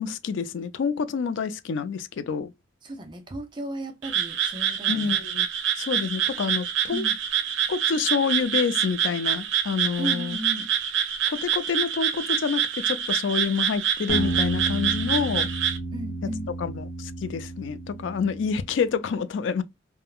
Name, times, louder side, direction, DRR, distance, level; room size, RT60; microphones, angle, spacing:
voice 1, 0.0-2.5 4.9-5.5 5.8-7.1 7.7-10.4 11.3-15.5 16.6-19.6, left 6 dB, 80° left, 0.4 m, -28 dB
voice 2, 2.8-5.3 6.9-7.2 10.0-10.7 15.9-16.5, right 1 dB, 25° right, 0.5 m, -35 dB
Frog, 4.0-15.8, right 9 dB, 85° right, 0.6 m, -26 dB
sound 1, 14.1-18.8, right 2 dB, 30° left, 1.1 m, -32 dB
3.5 x 2.1 x 2.2 m
head